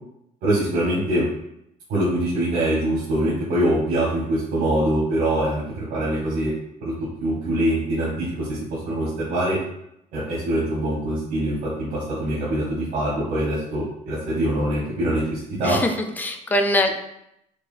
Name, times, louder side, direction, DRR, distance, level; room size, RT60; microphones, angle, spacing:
voice 1, 0.4-1.2 1.9-6.5 6.8-6.9 7.2-9.6 10.1-15.8, right 1 dB, 80° right, -6 dB, 1.2 m, -23 dB
voice 2, 15.6-16.9, left 1 dB, 10° left, 4 dB, 0.4 m, -22 dB
4.8 x 2.6 x 2.5 m, 0.79 s
cardioid pair, 135°, 15 cm